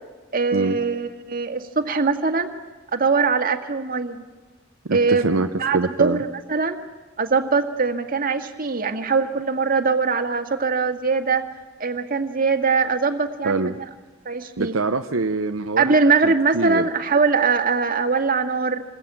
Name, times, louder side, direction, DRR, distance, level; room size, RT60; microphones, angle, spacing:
voice 1, 0.3-2.5 2.9-4.2 4.9-5.3 5.6-6.8 7.2-11.5 11.8-13.7 14.3-14.7 15.8-18.8, right 4 dB, 45° right, 5 dB, 1.8 m, -22 dB
voice 2, 4.9-6.2 13.4-13.8 14.6-16.9, right 3 dB, 75° right, 6 dB, 0.8 m, -24 dB
27.0 x 21.0 x 8.8 m, 1.2 s
head